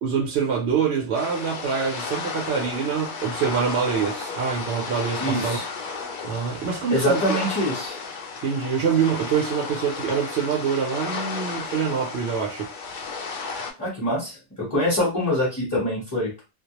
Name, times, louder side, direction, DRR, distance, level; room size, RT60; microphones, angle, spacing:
voice 1, 0.0-5.6 6.2-7.4 8.4-12.7 15.0-15.1, right 6 dB, 70° right, 0.8 m, -25 dB
sound 1, 1.1-13.7, left 4 dB, 60° left, 0.5 m, -33 dB
voice 2, 5.2-5.6 6.9-8.0 13.8-16.3, equal, 20° left, 0.7 m, -24 dB
2.2 x 2.0 x 2.8 m
omnidirectional pair, 1.2 m